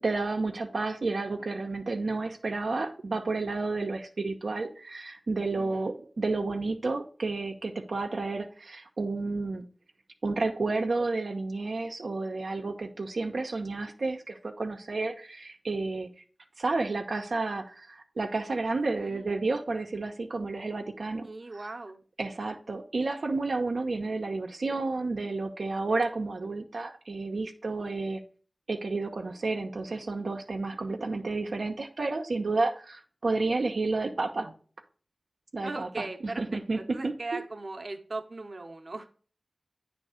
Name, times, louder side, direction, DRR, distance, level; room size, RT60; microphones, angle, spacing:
voice 1, 0.0-9.6 10.2-16.1 16.6-21.7 22.2-28.2 28.7-34.5 35.5-37.4, right 3 dB, 80° right, 0.8 m, -31 dB
voice 2, 5.5-5.9 19.0-19.2 21.2-22.0 35.6-39.1, right 2 dB, 55° right, 0.9 m, -39 dB
9.1 x 3.5 x 4.9 m
wide cardioid pair, 75°, 0 cm